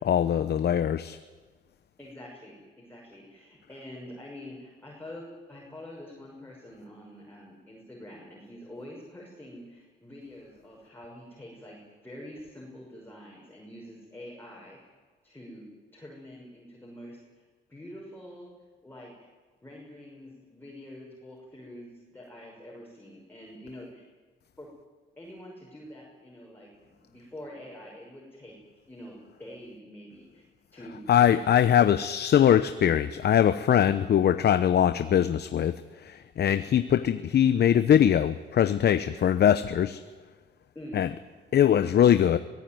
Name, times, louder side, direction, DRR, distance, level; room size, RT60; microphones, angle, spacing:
voice 1, 0.1-1.2 31.1-35.8 36.0-40.0 40.9-41.1 41.5-42.4, left 9 dB, 55° left, 11 dB, 0.9 m, -22 dB
voice 2, 2.0-14.8 15.2-15.7 15.9-17.4 17.7-18.5 18.8-19.3 19.6-24.0 24.6-24.7 25.2-28.6 28.9-30.4 30.7-31.4 31.8-31.9 40.7-41.0, left 1 dB, 10° left, -3 dB, 6.3 m, -46 dB
23.5 x 17.0 x 9.3 m, 1.4 s
cardioid pair, 90°, 20 cm